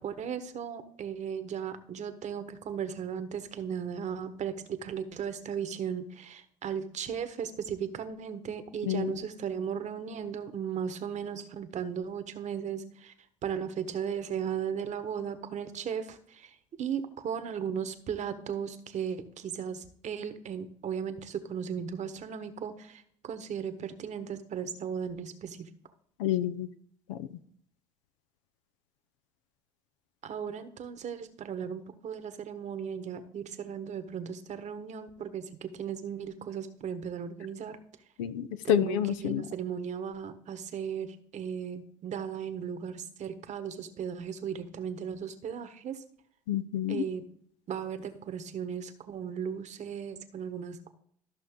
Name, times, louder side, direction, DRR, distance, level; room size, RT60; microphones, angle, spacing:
voice 1, 0.0-13.1 13.4-25.7 30.2-37.8 38.6-46.0 46.9-47.3 47.7-50.9, right 7 dB, 50° right, 11 dB, 1.2 m, -36 dB
voice 2, 26.2-26.7 27.1-27.3 38.2-39.4 46.5-47.0, left 10 dB, 80° left, 12 dB, 0.6 m, -28 dB
13.5 x 6.0 x 3.7 m, 0.64 s
hypercardioid pair, 60°, 16 cm